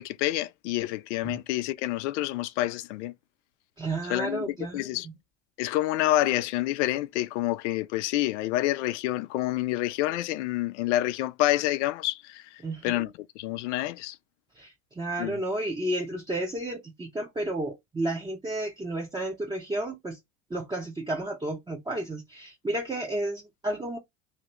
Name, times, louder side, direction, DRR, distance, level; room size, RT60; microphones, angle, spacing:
voice 1, 0.0-3.1 4.1-5.1 5.6-14.2 15.2-15.4, left 15 dB, 65° left, 0.5 m, -28 dB
voice 2, 3.8-4.8 12.6-13.0 14.6-20.2 20.5-24.0, right 1 dB, 10° right, 0.8 m, -32 dB
2.8 x 2.8 x 3.0 m
hypercardioid pair, 85°, 38 cm